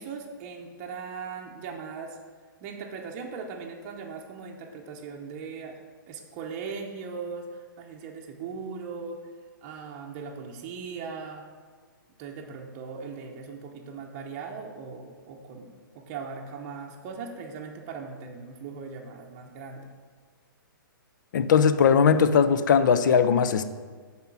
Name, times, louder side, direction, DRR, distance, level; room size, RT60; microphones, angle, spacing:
voice 1, 0.0-2.2 2.6-5.8 6.1-7.5 7.8-9.2 9.6-11.4 12.2-19.9, right 5 dB, 30° right, 0 dB, 0.7 m, -39 dB
voice 2, 21.3-23.6, left 6 dB, 60° left, 12 dB, 0.5 m, -19 dB
7.2 x 4.4 x 6.0 m, 1.5 s
hypercardioid pair, 150°, 12 cm